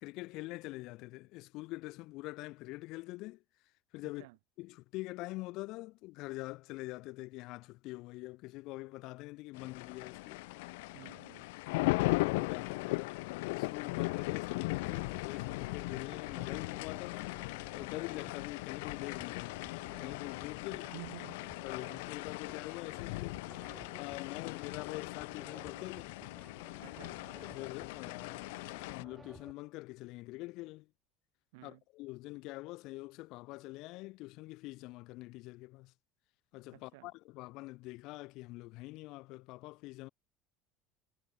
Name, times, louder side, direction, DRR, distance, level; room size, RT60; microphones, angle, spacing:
voice 1, 0.0-3.4 3.9-4.3 4.6-10.5 11.7-17.3 17.7-19.6 19.9-20.9 21.6-23.4 24.0-26.2 27.4-28.5 28.9-30.9 31.6-35.9 36.5-40.1, left 21 dB, 60° left, 0.7 m, -45 dB
sound 1, 9.5-29.0, left 24 dB, 85° left, 0.4 m, -38 dB
voice 2, 10.9-11.5 20.7-21.4 26.8-27.2 31.5-31.8 36.7-37.1, right 25 dB, 85° right, 1.3 m, -51 dB
sound 2, 14.9-29.5, right 3 dB, 15° right, 0.7 m, -57 dB
cardioid pair, 145°, 0 cm